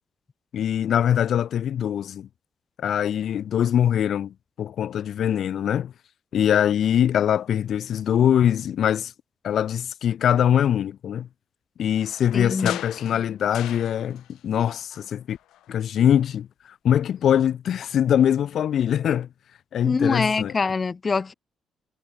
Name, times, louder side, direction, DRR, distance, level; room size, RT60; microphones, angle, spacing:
voice 1, 0.5-2.3 2.8-5.9 6.3-9.1 9.4-11.3 11.8-15.4 15.7-16.5 16.8-19.3 19.7-20.5, left 9 dB, 65° left, 0.9 m, -22 dB
sound 1, 12.0-14.4 14.7-15.8 16.1-16.2, left 13 dB, 85° left, 3.2 m, -39 dB
voice 2, 12.3-12.8 19.8-21.3, left 4 dB, 35° left, 2.8 m, -24 dB
cardioid pair, 90°, 0 cm